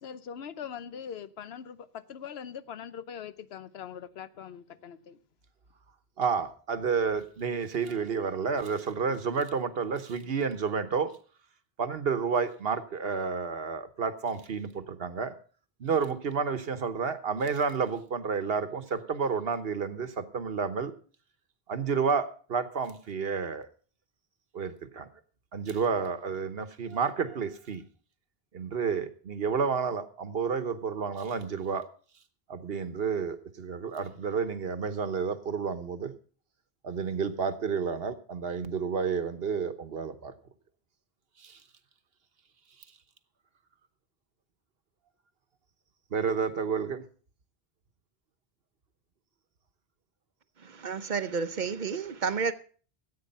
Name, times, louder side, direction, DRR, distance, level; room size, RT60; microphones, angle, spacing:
voice 1, 0.0-5.2, left 8 dB, 80° left, 1.0 m, -42 dB
voice 2, 6.2-11.2 11.8-15.3 15.8-20.9 21.7-23.7 24.5-25.1 25.5-27.8 28.5-31.9 32.5-36.1 36.8-40.3 41.4-41.6 46.1-47.0, right 5 dB, 70° right, 1.3 m, -30 dB
voice 3, 50.6-52.5, right 5 dB, 50° right, 0.9 m, -31 dB
14.5 x 8.5 x 5.4 m
omnidirectional pair, 1.0 m